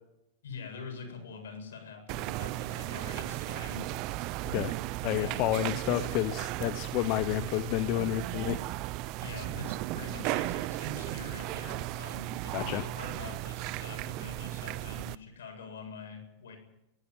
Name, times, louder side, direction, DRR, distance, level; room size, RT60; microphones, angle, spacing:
voice 1, 0.4-3.9 5.2-5.4 9.2-16.6, left 5 dB, 90° left, 4 dB, 8.0 m, -45 dB
sound 1, 2.1-15.2, right 17 dB, 50° right, 0.8 m, -35 dB
voice 2, 4.4-4.7 5.0-8.6 12.5-12.8, left 15 dB, 50° left, 12 dB, 0.9 m, -30 dB
25.0 x 14.5 x 9.6 m, 0.90 s
hypercardioid pair, 130°, 0 cm